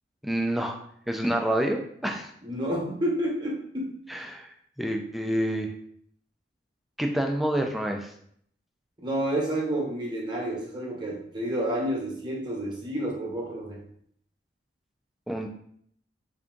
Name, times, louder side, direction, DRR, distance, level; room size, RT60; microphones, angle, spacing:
voice 1, 0.2-0.8 1.1-2.3 4.1-4.5 4.8-5.7 7.0-8.1 15.3-15.5, right 1 dB, ahead, 2 dB, 0.3 m, -28 dB
voice 2, 2.4-3.9 9.0-13.8, right 1 dB, 25° right, -3 dB, 0.9 m, -30 dB
3.4 x 2.7 x 3.7 m, 0.67 s
head